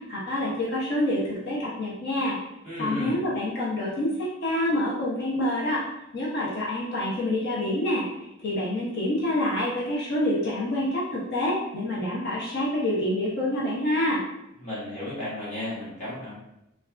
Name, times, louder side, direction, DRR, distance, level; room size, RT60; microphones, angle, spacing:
voice 1, 0.0-2.4 2.8-5.8 6.1-8.0 8.4-14.2, left 1 dB, 55° left, -5 dB, 0.6 m, -27 dB
voice 2, 2.6-3.2 14.6-16.4, left 1 dB, 35° left, -9 dB, 1.1 m, -33 dB
3.2 x 2.3 x 2.4 m, 0.85 s
head